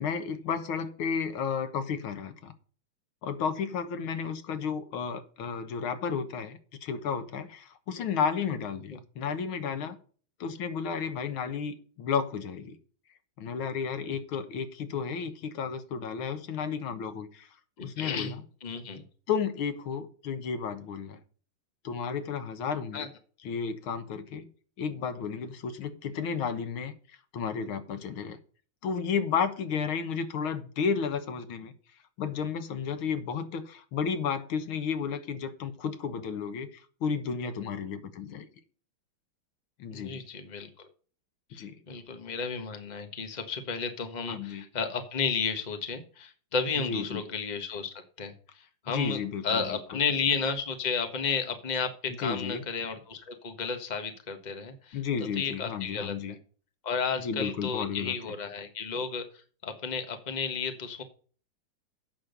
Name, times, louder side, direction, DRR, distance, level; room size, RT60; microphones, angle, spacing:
voice 1, 0.0-2.5 3.2-10.0 10.4-12.8 13.4-17.5 17.8-18.4 19.0-21.2 21.8-23.1 23.4-24.5 24.8-28.4 28.8-31.7 32.2-38.5 39.8-40.2 41.5-41.8 44.3-44.7 46.8-47.2 48.9-50.0 52.1-52.7 54.9-56.4 57.2-58.2, left 6 dB, 85° left, 10 dB, 2.0 m, -32 dB
voice 2, 18.0-18.3 18.6-19.0 22.9-23.1 39.9-40.7 41.5-48.3 48.8-49.2 49.4-55.0 55.3-56.1 56.8-59.2 59.6-61.0, left 5 dB, 25° left, 7 dB, 1.3 m, -32 dB
8.6 x 6.3 x 6.6 m, 0.42 s
omnidirectional pair, 2.2 m